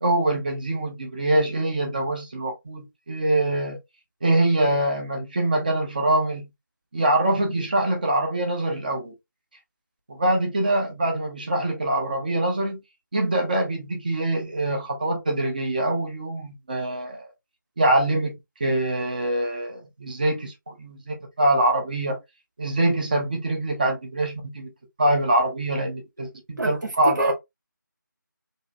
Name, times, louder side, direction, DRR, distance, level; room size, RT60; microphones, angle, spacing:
voice 1, 0.0-3.8 4.2-6.5 6.9-9.1 10.1-12.8 13.1-17.3 17.8-18.3 18.6-22.2 22.6-24.7 25.0-27.3, right 1 dB, 25° right, 0.7 m, -24 dB
voice 2, 26.6-27.3, right 1 dB, 65° right, 0.9 m, -27 dB
2.8 x 2.6 x 2.3 m
figure-of-eight pair, 165°, 11 cm